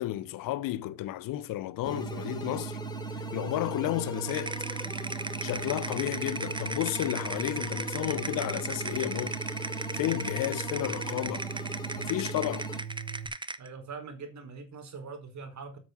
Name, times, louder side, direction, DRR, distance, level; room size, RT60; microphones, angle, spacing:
voice 1, 0.0-2.8 3.3-4.5 5.4-9.4 9.9-11.5 12.0-12.7, left 14 dB, 85° left, 1.0 m, -32 dB
sound 1, 1.8-12.8, equal, 15° left, 3.4 m, -40 dB
sound 2, 1.8-13.3, right 7 dB, 85° right, 1.7 m, -40 dB
sound 3, 4.3-13.7, right 3 dB, 15° right, 1.0 m, -37 dB
voice 2, 13.6-15.8, right 5 dB, 60° right, 4.2 m, -43 dB
8.6 x 7.6 x 5.8 m
supercardioid pair, 70°, 32 cm